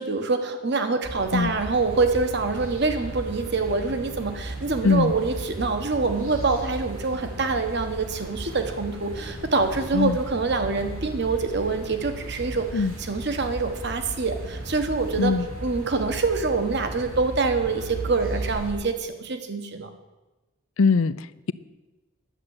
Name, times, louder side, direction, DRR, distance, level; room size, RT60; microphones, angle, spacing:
voice 1, 0.0-15.4 15.6-19.9, right 3 dB, 50° right, 7 dB, 1.2 m, -25 dB
sound 1, 1.0-18.7, right 1 dB, 75° right, 3.5 m, -36 dB
voice 2, 20.8-21.5, left 4 dB, 70° left, 17 dB, 0.5 m, -21 dB
11.0 x 7.6 x 9.6 m, 1.1 s
head